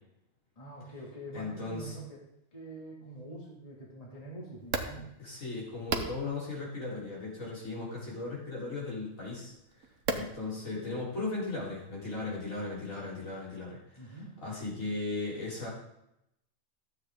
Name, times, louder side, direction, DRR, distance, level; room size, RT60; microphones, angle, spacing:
voice 1, 0.6-2.2 2.5-5.1 14.0-14.3, right 1 dB, 25° left, -3 dB, 2.2 m, -45 dB
voice 2, 1.3-2.0 5.2-9.5 9.8-15.7, left 3 dB, 75° left, -6 dB, 4.2 m, -37 dB
sound 1, 4.6-12.4, right 4 dB, 65° right, 1.3 m, -41 dB
13.0 x 7.9 x 3.6 m, 0.81 s
omnidirectional pair, 1.4 m